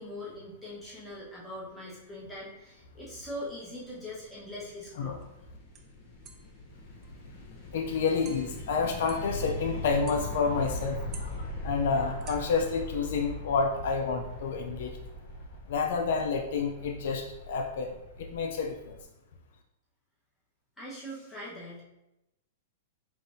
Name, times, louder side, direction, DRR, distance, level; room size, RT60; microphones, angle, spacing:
voice 1, 0.0-5.2 20.8-21.8, left 1 dB, 5° left, -8 dB, 1.2 m, -42 dB
sound 1, 3.5-19.0, left 1 dB, 35° left, 0.8 m, -41 dB
sound 2, 5.2-5.3 5.7-5.9 6.2-6.6 7.0-7.2 7.6-7.7 8.2-8.6 9.1-9.5 10.1-10.8 11.1-12.5, right 6 dB, 30° right, 0.4 m, -51 dB
voice 2, 7.7-15.0 15.7-18.8, left 5 dB, 65° left, 3 dB, 0.4 m, -29 dB
5.2 x 2.6 x 2.6 m, 0.92 s
supercardioid pair, 155°, 0 cm